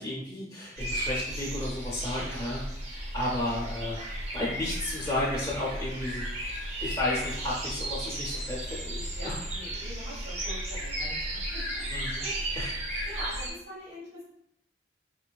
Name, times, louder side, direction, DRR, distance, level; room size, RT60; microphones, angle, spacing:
voice 1, 0.0-2.6 2.9-4.0 4.3-6.3 6.8-9.3 11.9-12.2 12.6-12.7, left 1 dB, 25° left, -4 dB, 0.5 m, -33 dB
sound 1, 0.8-13.5, right 1 dB, 35° right, 0.7 m, -34 dB
voice 2, 2.1-2.5 9.1-11.8 12.2-12.5 13.1-14.2, equal, 75° right, -9 dB, 1.1 m, -43 dB
4.5 x 2.5 x 2.3 m, 0.76 s
head